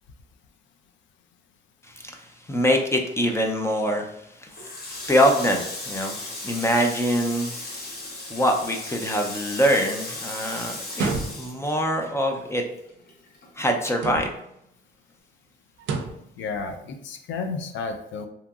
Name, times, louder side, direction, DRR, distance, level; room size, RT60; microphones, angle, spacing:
voice 1, 2.0-4.0 4.4-4.5 5.1-6.2 6.4-7.5 8.3-12.6 13.6-14.3, equal, 15° left, 2 dB, 0.5 m, -24 dB
Water tap faucet, 4.5-12.3 12.7-14.0, left 2 dB, 50° left, 0.9 m, -36 dB
sound 1, 10.9-11.7 13.9-14.6 15.8-16.3, right 4 dB, 80° right, 0.4 m, -30 dB
voice 2, 16.4-18.3, left 4 dB, 70° left, 6 dB, 0.5 m, -32 dB
2.8 x 2.6 x 2.3 m, 0.77 s
cardioid pair, 90°, 20 cm